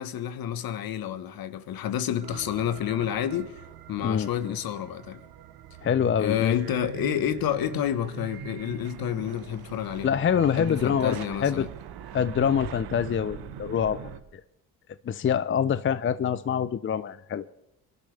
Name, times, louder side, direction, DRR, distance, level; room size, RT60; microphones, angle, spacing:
voice 1, 0.0-3.6 3.9-5.2 6.2-10.1 10.6-11.7, left 10 dB, 65° left, 1.4 m, -29 dB
sound 1, 2.2-14.2, right 9 dB, 70° right, 1.2 m, -42 dB
voice 2, 4.0-4.5 5.8-6.5 10.0-11.7 12.1-14.1 15.0-17.6, left 8 dB, 30° left, 0.6 m, -25 dB
23.5 x 12.0 x 3.4 m
supercardioid pair, 65°, 39 cm